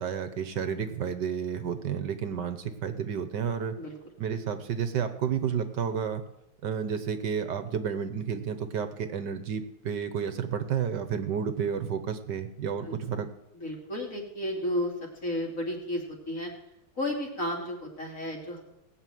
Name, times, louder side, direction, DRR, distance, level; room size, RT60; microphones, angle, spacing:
voice 1, 0.0-3.8 4.2-6.2 6.6-13.3, right 7 dB, 65° right, 10 dB, 1.6 m, -31 dB
voice 2, 13.5-14.9 15.2-16.5 17.0-18.6, left 1 dB, 40° left, 0 dB, 3.4 m, -32 dB
18.5 x 6.8 x 9.3 m, 0.87 s
omnidirectional pair, 2.2 m